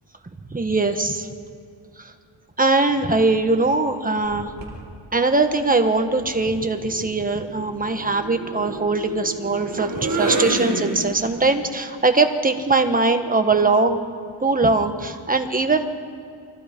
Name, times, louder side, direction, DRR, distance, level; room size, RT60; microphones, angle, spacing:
voice 1, 0.5-1.3 2.6-4.5 5.1-14.0 14.4-15.8, right 3 dB, 20° right, 6 dB, 1.5 m, -21 dB
sound 1, 4.3-4.8 6.2-11.4, right 2 dB, 40° right, 4.9 m, -29 dB
29.5 x 23.0 x 5.4 m, 2.4 s
wide cardioid pair, 160°, 47 cm